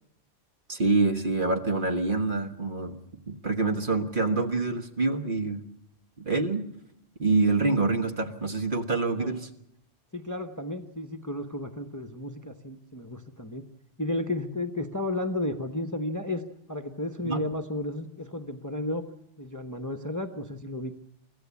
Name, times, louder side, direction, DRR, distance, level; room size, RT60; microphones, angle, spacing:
voice 1, 0.7-3.0 3.3-5.6 6.2-6.6 7.2-9.5 17.2-17.4, right 3 dB, 45° right, 6 dB, 1.6 m, -26 dB
voice 2, 10.1-13.6 14.0-19.1 19.4-20.9, left 1 dB, 15° left, 7 dB, 1.0 m, -33 dB
24.5 x 15.0 x 8.3 m, 0.81 s
omnidirectional pair, 1.3 m